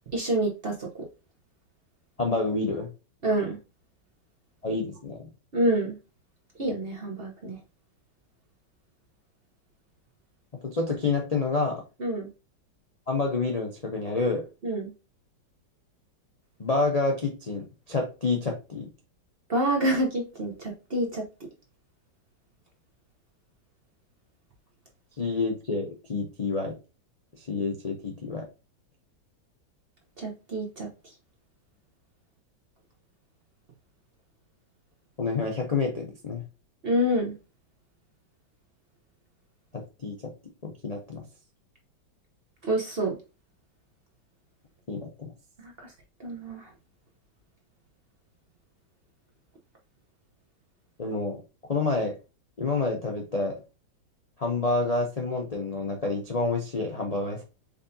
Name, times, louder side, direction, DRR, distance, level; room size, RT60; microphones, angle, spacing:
voice 1, 0.1-1.1 3.2-3.6 5.5-5.9 6.6-7.6 12.0-12.3 14.6-14.9 19.5-21.2 30.2-30.9 36.8-37.3 42.6-43.1 45.6-45.7 46.2-46.7, right 1 dB, 40° right, 0 dB, 0.9 m, -27 dB
voice 2, 2.2-2.9 4.6-5.3 10.6-11.8 13.1-14.4 16.6-18.9 25.2-26.7 27.5-28.5 35.2-36.4 39.7-40.3 40.6-41.2 44.9-45.3 51.0-51.4 51.7-52.2 52.6-53.5 54.4-57.4, left 3 dB, 50° left, 1 dB, 0.4 m, -28 dB
5.3 x 3.7 x 2.7 m, 0.30 s
omnidirectional pair, 1.9 m